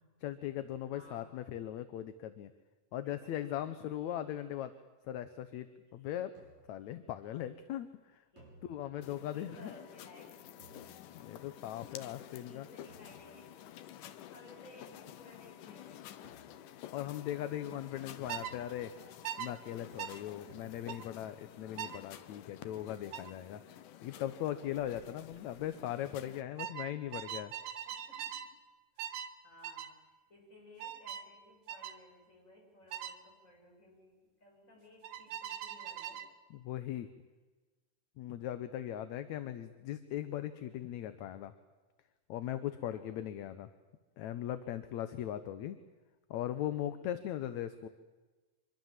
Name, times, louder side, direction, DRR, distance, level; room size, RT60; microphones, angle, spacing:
voice 1, 0.2-2.5 2.9-4.7 5.1-6.3 6.7-8.2 8.6-9.7 11.2-12.7 16.9-18.9 19.4-27.5 36.5-37.1 38.2-41.5 42.3-43.7 44.2-45.8 46.3-47.9, left 11 dB, 70° left, 11 dB, 2.1 m, -39 dB
voice 2, 0.9-1.4 3.0-3.5 6.0-6.1 7.2-7.4 8.3-8.5 9.3-11.2 12.4-16.0 21.4-21.8 27.8-28.5 28.9-36.2 42.9-43.0 45.1-45.2 46.8-47.1, left 1 dB, 20° left, -1 dB, 8.1 m, -59 dB
sound 1, 6.4-6.9 8.4-9.2 10.6-11.4 12.9-13.6 16.2-16.8 18.2-19.1 20.5-21.3 22.8-23.5, right 1 dB, 60° right, 8.2 m, -61 dB
sound 2, 9.0-26.4, left 11 dB, 90° left, 2.6 m, -51 dB
sound 3, 18.3-18.6 19.2-19.5 20.0-20.2 20.9-21.1 21.8-22.0 23.1-23.3 24.8-25.0 25.3-25.7 26.6-28.5 29.0-29.3 29.6-29.9 30.8-31.3 31.7-32.0 32.9-33.2 35.0-36.3, right 9 dB, 75° right, 2.5 m, -41 dB
25.0 x 22.5 x 7.5 m, 1.2 s
omnidirectional pair, 3.6 m